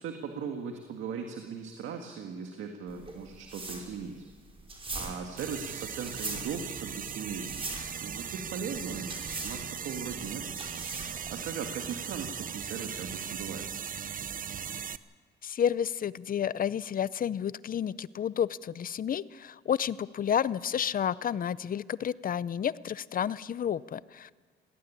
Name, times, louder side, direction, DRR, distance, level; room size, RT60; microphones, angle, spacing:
voice 1, 0.0-4.3 4.9-7.5 8.0-10.5 11.3-13.7, right 6 dB, 80° right, 4 dB, 1.9 m, -38 dB
sound 1, 2.9-11.3, right 2 dB, 30° right, 5.2 m, -41 dB
sound 2, 5.4-15.0, right 8 dB, 45° right, 0.7 m, -38 dB
voice 2, 15.4-24.3, left 9 dB, 45° left, 19 dB, 0.6 m, -31 dB
18.5 x 17.5 x 9.7 m, 1.5 s
cardioid pair, 90°, 20 cm